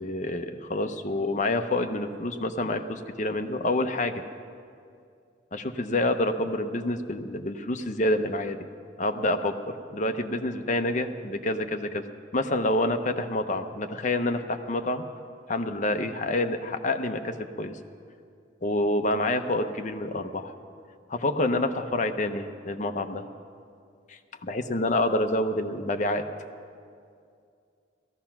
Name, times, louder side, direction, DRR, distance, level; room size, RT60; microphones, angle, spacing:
voice 1, 0.0-4.2 5.5-8.6 9.0-12.0 12.3-15.0 15.5-17.8 18.6-20.5 21.1-23.3 24.1-26.2, left 1 dB, 40° left, 6 dB, 0.7 m, -27 dB
17.0 x 14.0 x 5.9 m, 2.4 s
head